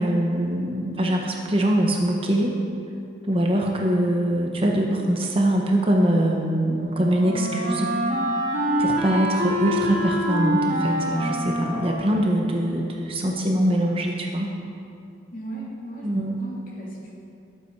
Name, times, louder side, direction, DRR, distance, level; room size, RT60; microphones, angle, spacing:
voice 1, 0.0-2.5 3.3-7.9 8.8-14.5 16.0-16.3, right 1 dB, 30° right, 0 dB, 1.1 m, -23 dB
Wind instrument woodwind instrument, 6.3-13.1, equal, 45° right, 2.5 m, -26 dB
voice 2, 15.3-17.1, right 1 dB, 45° left, -4 dB, 2.8 m, -37 dB
20.0 x 8.4 x 4.7 m, 2.5 s
head